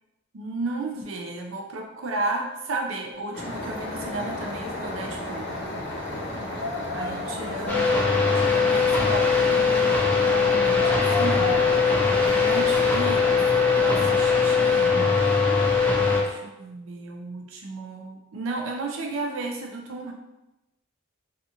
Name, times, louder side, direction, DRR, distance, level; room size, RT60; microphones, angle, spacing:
voice 1, 0.3-5.5 6.9-11.7 12.3-13.2 13.7-15.1 16.1-20.1, right 2 dB, 75° right, 1 dB, 0.5 m, -34 dB
sound 1, 3.3-15.2, left 1 dB, 60° left, 0.7 m, -33 dB
sound 2, 7.7-16.2, left 5 dB, 10° left, 0.4 m, -21 dB
2.5 x 2.4 x 2.8 m, 0.98 s
head